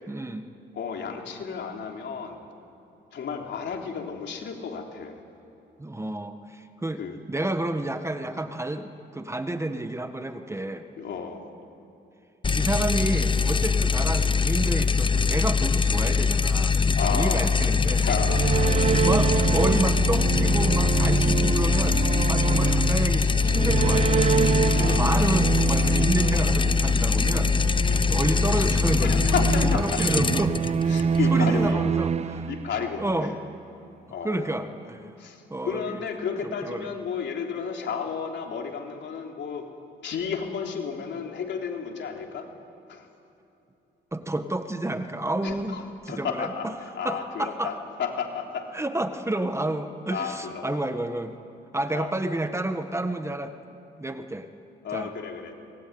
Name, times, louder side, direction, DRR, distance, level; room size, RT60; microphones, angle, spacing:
voice 1, 0.1-0.5 5.8-10.8 12.6-18.1 19.0-24.5 24.8-30.6 31.3-32.5 33.0-33.4 34.2-35.1 35.5-36.0 36.4-36.9 44.1-46.7 47.0-47.7 48.7-51.3 51.7-53.5 54.0-54.5 54.9-55.1, right 1 dB, 15° right, 8 dB, 1.4 m, -30 dB
voice 2, 0.7-2.4 3.1-5.2 7.0-7.2 11.0-11.4 12.5-12.6 16.9-17.5 18.0-18.7 24.8-25.3 27.9-28.1 29.0-30.0 30.9-31.8 32.5-33.0 34.1-34.5 35.2-39.6 40.0-42.5 42.9-43.1 45.4-45.8 46.1-46.7 47.0-48.7 50.1-50.8 51.9-52.1 54.8-55.5, left 6 dB, 65° left, 2 dB, 3.7 m, -32 dB
sound 1, 12.4-31.7, left 5 dB, 25° left, 0.8 m, -23 dB
sound 2, 17.9-33.1, right 6 dB, 35° right, 0.6 m, -26 dB
24.5 x 21.0 x 9.5 m, 2.9 s
cardioid pair, 90°, 20 cm